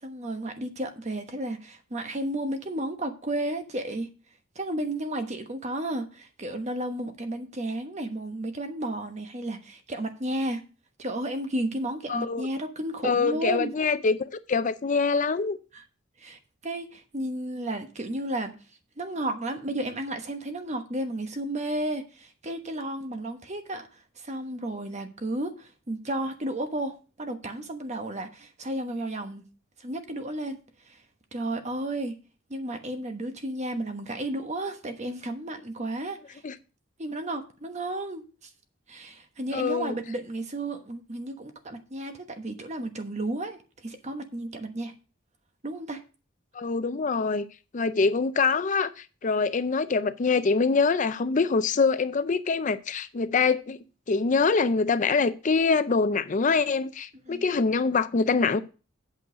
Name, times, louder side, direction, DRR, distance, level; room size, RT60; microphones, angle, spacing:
voice 1, 0.0-4.1 4.5-10.6 11.0-13.7 15.7-15.8 16.2-18.5 19.0-29.4 29.8-30.6 30.8-31.0 31.3-32.2 32.5-36.4 37.0-38.5 38.9-44.9 45.6-46.0 57.3-57.4, right 1 dB, 35° right, 1.1 m, -33 dB
voice 2, 12.1-12.5 13.0-15.6 36.4-36.5 39.5-39.9 46.5-47.5 47.7-53.8 54.1-58.6, left 4 dB, 40° left, 0.5 m, -24 dB
8.5 x 6.3 x 5.0 m
head